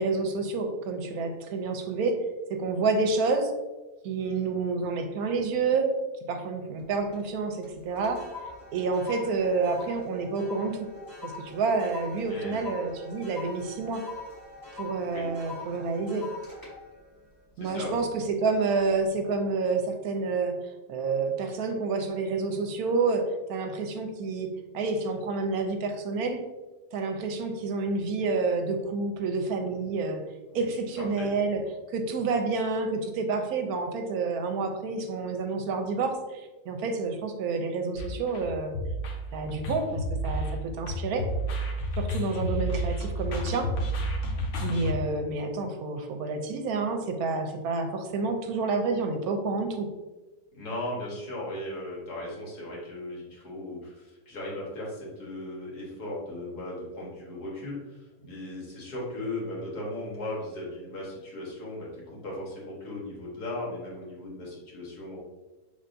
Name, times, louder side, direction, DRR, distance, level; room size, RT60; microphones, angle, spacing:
voice 1, 0.0-3.5 4.0-6.0 6.3-8.3 8.7-10.9 11.2-14.1 14.7-16.3 17.6-20.6 20.9-26.4 26.9-30.2 30.5-31.6 31.9-38.7 39.3-41.3 42.0-43.8 44.6-49.9, right 4 dB, 75° right, 5 dB, 1.0 m, -29 dB
sound 1, 6.8-7.3 7.6-18.2 18.6-18.9, left 3 dB, 15° left, 1.1 m, -43 dB
voice 2, 12.3-12.6 15.1-15.3 17.6-18.0 30.5-30.6 31.2-31.3 50.5-65.2, left 1 dB, 75° left, -4 dB, 1.9 m, -37 dB
sound 2, 37.9-44.9, equal, 55° left, 1.0 m, -31 dB
5.4 x 3.4 x 2.6 m, 1.2 s
omnidirectional pair, 1.7 m